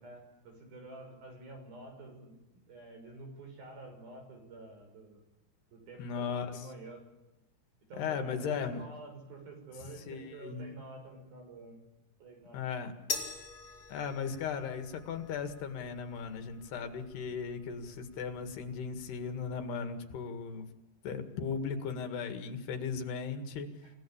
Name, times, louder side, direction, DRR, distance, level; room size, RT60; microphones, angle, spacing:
voice 1, 0.0-2.3 2.7-5.2 5.7-7.0 7.9-11.8 12.2-12.6 23.8-23.9, right 2 dB, 60° right, 3 dB, 8.2 m, -49 dB
voice 2, 6.0-6.7 8.0-8.8 10.1-10.7 12.5-12.9 13.9-20.7 21.0-23.7, left 6 dB, 75° left, 7 dB, 4.0 m, -37 dB
sound 1, 13.1-19.7, left 4 dB, 30° left, 5.4 m, -45 dB
29.5 x 16.5 x 8.7 m, 0.94 s
omnidirectional pair, 4.8 m